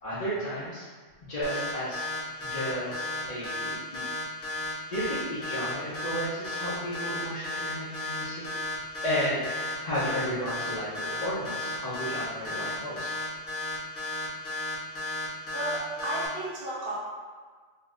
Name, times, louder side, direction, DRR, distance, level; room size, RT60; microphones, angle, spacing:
voice 1, 0.0-0.9 1.3-2.1 2.4-4.1 4.6-8.4 9.0-13.1, equal, 40° left, -12 dB, 0.6 m, -33 dB
sound 1, 1.4-16.3, left 2 dB, 85° left, 1.3 m, -33 dB
voice 2, 15.5-17.0, right 2 dB, 50° right, -8 dB, 1.0 m, -33 dB
3.7 x 2.7 x 2.4 m, 1.5 s
omnidirectional pair, 1.4 m